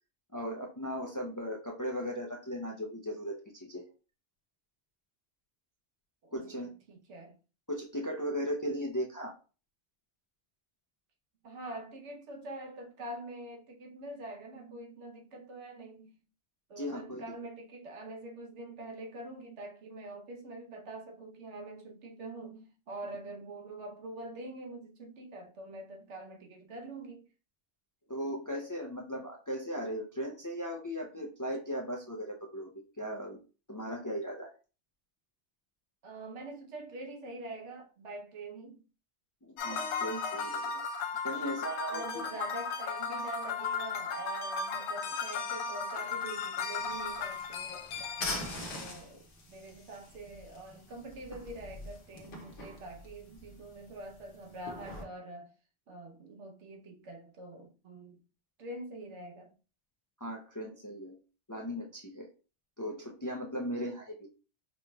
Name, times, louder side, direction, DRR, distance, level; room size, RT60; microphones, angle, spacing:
voice 1, 0.3-3.8 6.3-6.7 7.7-9.3 16.8-17.2 28.1-33.4 33.7-34.5 39.4-40.8 41.2-42.3 60.2-61.2 61.5-62.3 62.8-64.3, equal, 30° left, 0.4 m, -37 dB
voice 2, 6.2-7.4 11.4-16.2 16.7-27.3 36.0-38.8 41.9-47.9 48.7-55.5 55.9-58.2 58.6-59.5, right 2 dB, 90° right, 1.1 m, -45 dB
sound 1, 39.6-48.5, left 4 dB, 80° left, 0.9 m, -36 dB
sound 2, 46.8-55.0, left 2 dB, 55° left, 1.0 m, -44 dB
4.9 x 3.0 x 2.3 m
omnidirectional pair, 1.2 m